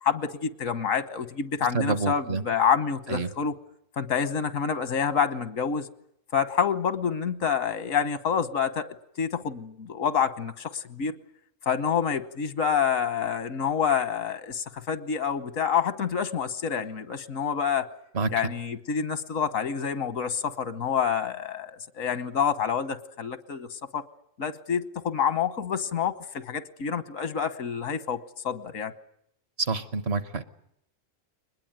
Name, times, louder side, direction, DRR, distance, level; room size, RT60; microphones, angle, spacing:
voice 1, 0.0-3.6 4.0-5.9 6.3-11.2 11.7-17.9 18.3-24.0 24.4-28.9, left 7 dB, 90° left, 14 dB, 1.6 m, -28 dB
voice 2, 1.7-2.4 3.1-3.3 18.1-18.3 29.6-30.4, right 3 dB, 55° right, 13 dB, 1.4 m, -27 dB
23.0 x 20.5 x 9.0 m, 0.74 s
omnidirectional pair, 1.3 m